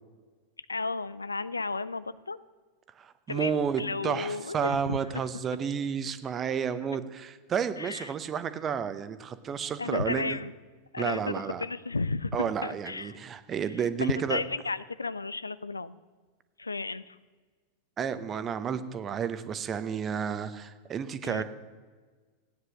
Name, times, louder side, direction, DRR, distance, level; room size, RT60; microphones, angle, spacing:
voice 1, 0.7-2.4 3.3-5.0 7.8-8.1 9.8-10.5 10.9-13.2 13.7-16.0 16.6-17.2 21.2-21.4, left 3 dB, 80° left, 17 dB, 0.4 m, -33 dB
voice 2, 3.0-10.4 11.0-11.6 12.3-14.4 18.0-21.4, right 7 dB, 25° right, 12 dB, 0.9 m, -31 dB
15.5 x 9.4 x 6.3 m, 1.4 s
figure-of-eight pair, 90°, 0 cm